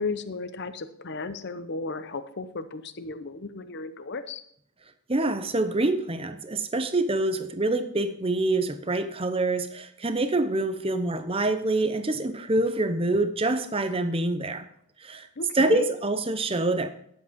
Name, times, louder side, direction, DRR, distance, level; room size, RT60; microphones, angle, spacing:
voice 1, 0.0-4.4 15.4-15.9, left 3 dB, 50° left, 11 dB, 0.7 m, -34 dB
voice 2, 5.1-14.7 15.0-15.3 15.5-16.9, right 2 dB, 25° right, 10 dB, 0.8 m, -26 dB
10.5 x 7.8 x 5.2 m, 0.70 s
head